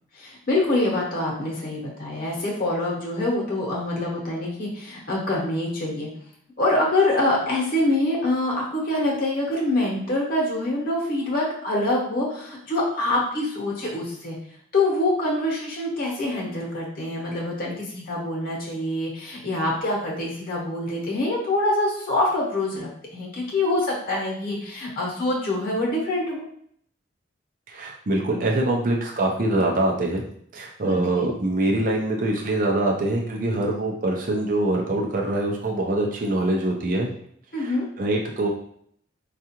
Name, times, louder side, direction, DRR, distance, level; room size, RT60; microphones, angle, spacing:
voice 1, 0.1-6.1 6.6-14.4 14.7-26.4 30.8-31.3 37.5-37.8, left 2 dB, 50° left, -2 dB, 0.9 m, -25 dB
voice 2, 27.7-30.2 30.5-37.1 37.6-38.5, right 2 dB, 45° right, 0 dB, 0.5 m, -24 dB
4.6 x 2.4 x 2.8 m, 0.66 s
head